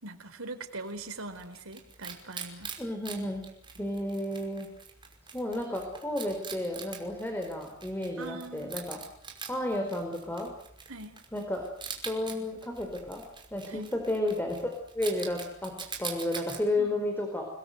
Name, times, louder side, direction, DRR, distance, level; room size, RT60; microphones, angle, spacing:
voice 1, 0.0-2.8 8.2-8.8 10.9-11.2 13.7-13.9 16.8-17.2, right 2 dB, 80° right, 7 dB, 4.3 m, -42 dB
Wild animals, 0.6-16.6, right 6 dB, 25° right, 5.4 m, -44 dB
voice 2, 2.8-3.5 3.8-4.7 5.3-9.0 9.5-10.5 11.3-11.6 12.0-13.2 13.5-15.7 16.0-17.4, left 1 dB, 10° left, 3 dB, 4.5 m, -32 dB
30.0 x 21.0 x 8.1 m, 0.71 s
head